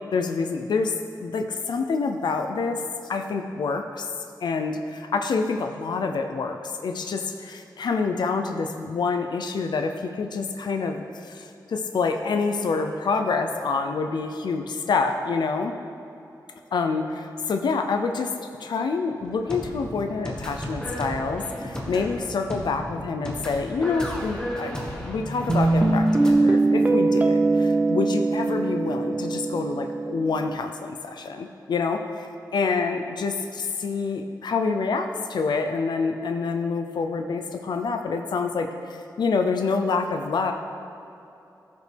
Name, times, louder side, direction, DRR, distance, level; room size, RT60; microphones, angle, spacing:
voice 1, 0.1-4.1 4.4-15.7 16.7-18.3 18.6-40.5, left 4 dB, 85° left, 5 dB, 0.5 m, -27 dB
sound 1, 19.2-26.3, equal, 10° left, 1.3 m, -34 dB
Guitar, 25.5-30.5, right 2 dB, 20° right, 0.4 m, -21 dB
15.0 x 5.1 x 3.4 m, 2.8 s
wide cardioid pair, 100°, 7 cm